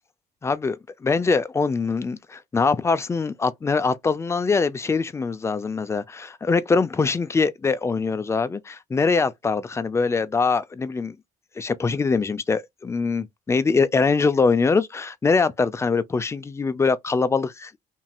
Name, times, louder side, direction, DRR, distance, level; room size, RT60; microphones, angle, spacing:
voice 1, 0.4-11.2 11.6-17.7, left 4 dB, 15° left, 0.4 m, -23 dB
3.0 x 2.7 x 2.3 m
cardioid pair, 110°, 17 cm